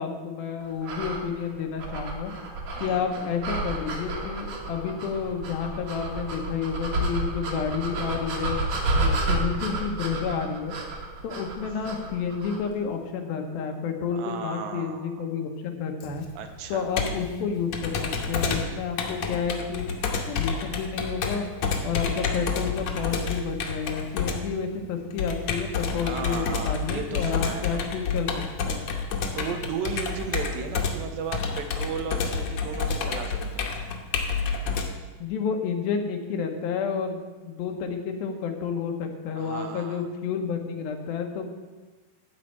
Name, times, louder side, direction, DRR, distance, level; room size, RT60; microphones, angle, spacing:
voice 1, 0.0-2.3 2.8-8.6 8.9-10.7 11.2-16.3 16.7-19.9 20.3-21.4 21.8-28.9 35.2-41.4, left 6 dB, 90° left, 4 dB, 2.9 m, -30 dB
sound 1, 0.8-12.7, right 2 dB, 55° right, 2.5 m, -31 dB
voice 2, 14.1-15.3 16.4-16.9 26.0-27.9 29.4-33.7 39.4-40.0, right 6 dB, 85° right, 6 dB, 2.7 m, -35 dB
Computer keyboard, 16.0-34.9, left 5 dB, 65° left, 1.7 m, -29 dB
12.5 x 4.4 x 8.4 m, 1.3 s
omnidirectional pair, 4.1 m